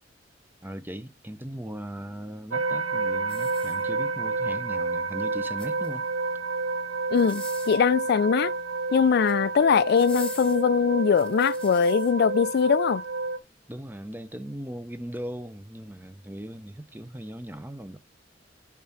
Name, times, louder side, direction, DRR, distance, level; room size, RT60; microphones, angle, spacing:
voice 1, 0.6-6.1 13.7-18.0, right 1 dB, 10° right, 0.7 m, -38 dB
sound 1, 2.5-13.4, right 3 dB, 80° right, 0.7 m, -30 dB
sound 2, 3.2-4.3 5.4-6.1 7.1-7.9 9.0-9.4 9.9-12.1 12.7-12.8, left 3 dB, 5° left, 1.3 m, -44 dB
voice 2, 7.1-8.5 8.9-13.0, left 6 dB, 60° left, 0.4 m, -22 dB
7.3 x 3.7 x 5.8 m
head